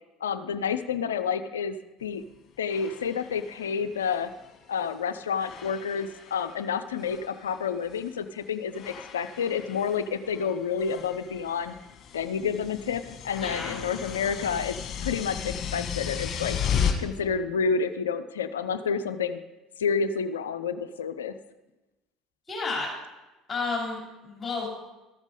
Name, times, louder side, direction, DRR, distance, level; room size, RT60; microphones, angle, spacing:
voice 1, 0.2-2.2 2.6-4.3 4.7-11.8 12.1-14.8 15.0-16.6 17.0-19.4 19.8-21.4, left 6 dB, 80° left, 11 dB, 0.4 m, -29 dB
sound 1, 2.0-2.1 2.6-5.0 5.3-6.6 6.9-8.1 8.7-16.9, left 7 dB, 45° left, 1.6 m, -35 dB
voice 2, 13.4-13.8 22.5-22.9 23.5-24.7, left 3 dB, 25° left, -3 dB, 3.3 m, -31 dB
13.5 x 7.3 x 4.9 m, 1.1 s
hypercardioid pair, 65°, 0 cm